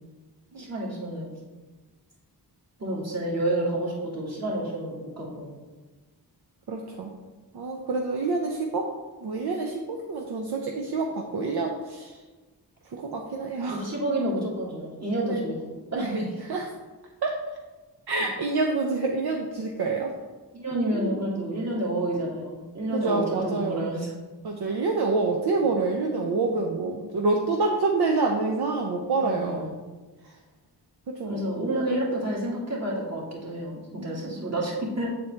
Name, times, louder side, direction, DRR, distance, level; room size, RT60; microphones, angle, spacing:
voice 1, 0.6-1.3 2.8-5.5 13.7-16.3 20.5-24.1 29.2-29.7 31.3-35.2, right 1 dB, 40° right, -5 dB, 1.9 m, -29 dB
voice 2, 6.7-7.1 7.5-8.9 9.2-12.2 12.9-13.9 15.3-15.5 16.0-16.7 17.2-17.3 18.1-20.1 20.7-21.6 22.9-23.9 24.4-29.7 30.2-30.4 31.1-31.4 34.0-34.5, right 3 dB, 70° right, 1 dB, 0.7 m, -27 dB
7.1 x 4.3 x 3.2 m, 1.2 s
cardioid pair, 60°, 40 cm